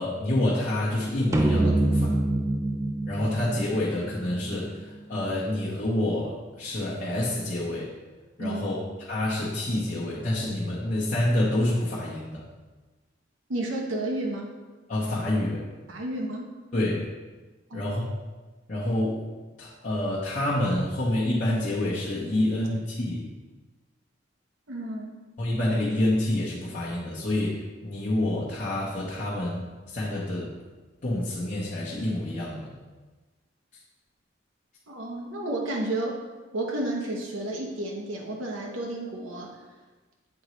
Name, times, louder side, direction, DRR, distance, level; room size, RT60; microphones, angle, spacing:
voice 1, 0.0-2.2 3.1-7.9 8.4-8.8 9.1-12.4 14.9-15.7 16.7-17.1 17.7-18.1 18.7-19.2 19.6-23.3 25.4-30.5 31.0-32.7, left 1 dB, 40° left, -8 dB, 0.8 m, -28 dB
sound 1, 1.3-4.8, right 1 dB, 15° right, 0.4 m, -26 dB
voice 2, 8.4-8.8 13.5-14.6 15.9-16.5 17.7-18.0 24.7-25.2 34.9-36.2 36.5-39.6, right 1 dB, 90° right, -1 dB, 0.9 m, -32 dB
7.7 x 3.9 x 3.1 m, 1.2 s
head